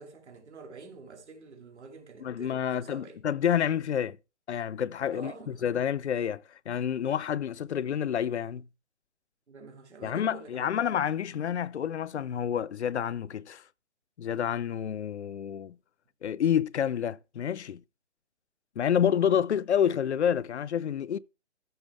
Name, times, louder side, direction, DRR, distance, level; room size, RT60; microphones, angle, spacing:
voice 1, 0.0-3.2 5.1-5.7 9.5-10.8 11.2-11.4, right 4 dB, 70° right, 2.6 m, -47 dB
voice 2, 2.2-4.2 4.5-6.4 6.7-8.6 10.0-13.6 14.2-15.8 16.2-17.8 18.8-21.2, left 9 dB, 70° left, 0.6 m, -28 dB
13.5 x 6.2 x 3.5 m
hypercardioid pair, 160°, 36 cm